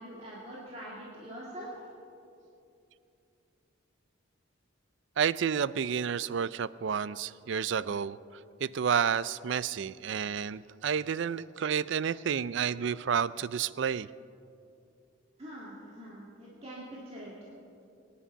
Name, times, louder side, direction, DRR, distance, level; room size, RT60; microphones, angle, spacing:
voice 1, 0.0-1.9 15.4-17.4, right 1 dB, 30° right, -6 dB, 2.2 m, -44 dB
voice 2, 5.2-8.2 8.6-14.1, right 7 dB, 65° right, 18 dB, 0.4 m, -30 dB
23.0 x 10.0 x 5.6 m, 2.6 s
head